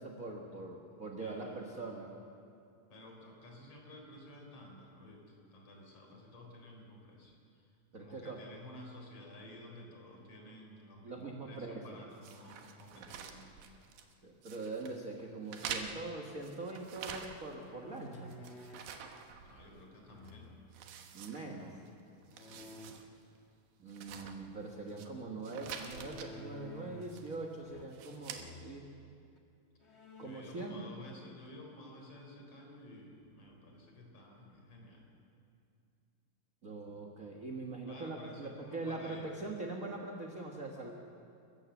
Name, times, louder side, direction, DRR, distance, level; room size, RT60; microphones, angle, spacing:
voice 1, 0.0-2.1 7.9-8.4 11.0-12.0 14.2-18.3 21.1-21.8 23.8-28.8 30.2-30.9 36.6-40.9, right 3 dB, 55° right, 1 dB, 0.9 m, -42 dB
voice 2, 1.2-1.6 2.9-7.7 8.0-13.5 19.4-20.6 22.4-23.1 30.2-35.0 37.9-39.3, left 1 dB, 40° left, 1 dB, 4.5 m, -53 dB
sound 1, 12.2-14.1 14.4-15.0 15.5-17.6 18.0-19.9 20.2-20.3 20.7-21.9 22.2-23.0 23.4-23.5 23.9-25.1 25.4-26.3 27.0-27.5 27.9-28.4, right 7 dB, 80° right, 3.0 m, -47 dB
sound 2, 17.6-18.9 20.1-20.8 22.3-22.9 25.8-27.2 27.6-28.1 28.3-28.8 29.4-29.5 29.8-30.6, left 1 dB, 60° left, 0.6 m, -51 dB
29.5 x 15.0 x 7.2 m, 2.5 s
omnidirectional pair, 4.1 m